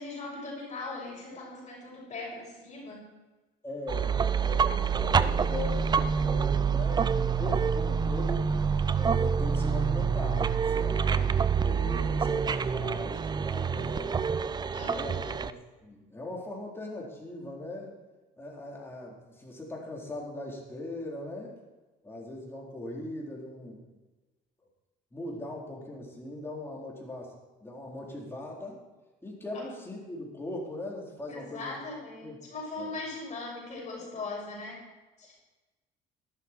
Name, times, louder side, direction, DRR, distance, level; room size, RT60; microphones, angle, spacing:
voice 1, 0.0-3.1 14.7-15.4 29.5-29.6 31.3-34.8 35.2-35.3, left 3 dB, 40° left, -7 dB, 5.6 m, -40 dB
voice 2, 3.6-8.5 8.9-14.2 14.9-15.6 15.8-17.9 18.4-21.6 22.0-23.8 25.1-27.3 27.6-28.8 29.2-31.7 32.2-32.4 32.8-33.0, left 1 dB, 15° left, -3 dB, 4.2 m, -40 dB
sound 1, 3.9-15.5, right 6 dB, 25° right, 0.5 m, -27 dB
13.0 x 12.5 x 4.6 m, 1.2 s
cardioid pair, 110°, 17 cm